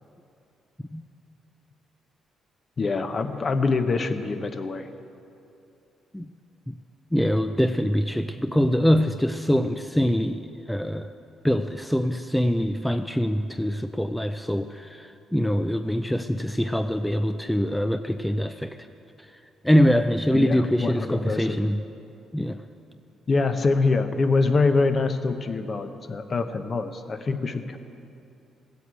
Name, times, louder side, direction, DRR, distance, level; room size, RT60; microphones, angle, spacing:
voice 1, 2.8-4.9 20.3-21.6 23.3-27.8, left 3 dB, 40° left, 8 dB, 1.0 m, -25 dB
voice 2, 7.1-11.1 11.4-18.7 19.6-21.8 22.3-22.6, equal, 5° left, 8 dB, 0.4 m, -24 dB
16.0 x 8.2 x 8.2 m, 2.7 s
cardioid pair, 90°, 0 cm